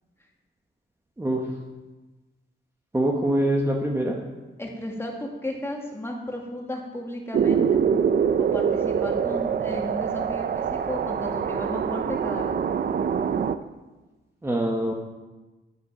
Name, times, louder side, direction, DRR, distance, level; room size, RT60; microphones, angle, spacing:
voice 1, 1.2-1.5 2.9-4.2 14.4-14.9, right 1 dB, 15° right, 0 dB, 1.0 m, -24 dB
voice 2, 4.6-7.8 8.4-12.6, left 1 dB, 10° left, 0 dB, 1.8 m, -34 dB
sound 1, 7.3-13.6, right 7 dB, 50° right, 0.5 m, -24 dB
11.0 x 8.1 x 5.9 m, 1.2 s
wide cardioid pair, 140°, 21 cm